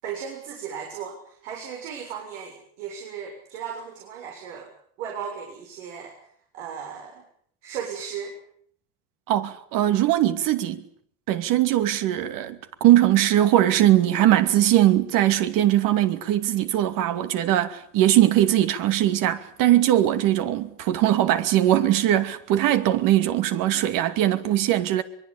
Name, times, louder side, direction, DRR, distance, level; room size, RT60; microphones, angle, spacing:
voice 1, 0.0-4.7 5.0-6.1 6.5-7.2 7.6-8.4, right 7 dB, 85° right, 7.2 m, -36 dB
voice 2, 9.3-10.8 11.3-25.0, right 13 dB, 60° right, 2.5 m, -20 dB
23.5 x 23.0 x 8.7 m
supercardioid pair, 115°, 36 cm